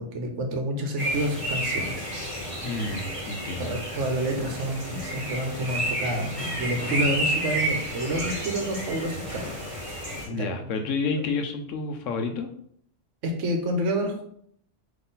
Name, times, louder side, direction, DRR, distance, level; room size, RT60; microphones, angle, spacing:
voice 1, 0.0-2.1 3.6-9.5 10.3-10.5 13.2-14.2, right 1 dB, 75° right, 4 dB, 1.2 m, -29 dB
sound 1, 1.0-10.3, right 1 dB, 30° right, 1.0 m, -31 dB
voice 2, 2.6-3.8 10.1-12.5, left 4 dB, 85° left, 5 dB, 1.0 m, -30 dB
3.9 x 3.2 x 3.9 m, 0.65 s
omnidirectional pair, 1.3 m